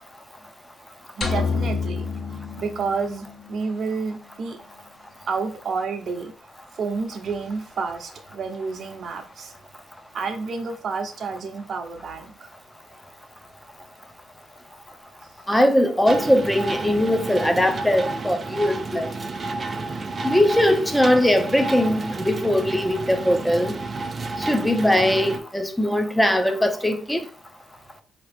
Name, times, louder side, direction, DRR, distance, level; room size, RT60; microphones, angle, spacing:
sound 1, 1.2-3.5, left 5 dB, 45° left, 0.9 m, -27 dB
voice 1, 1.2-2.1 2.6-4.6 5.3-6.3 6.7-9.5 10.1-12.5, right 4 dB, 60° right, 0.9 m, -30 dB
voice 2, 15.5-19.1 20.2-23.7 24.5-27.2, left 1 dB, 5° left, 0.7 m, -20 dB
sound 2, 16.1-25.4, right 3 dB, 35° right, 0.5 m, -31 dB
4.6 x 2.9 x 3.3 m
cardioid pair, 90°, 0 cm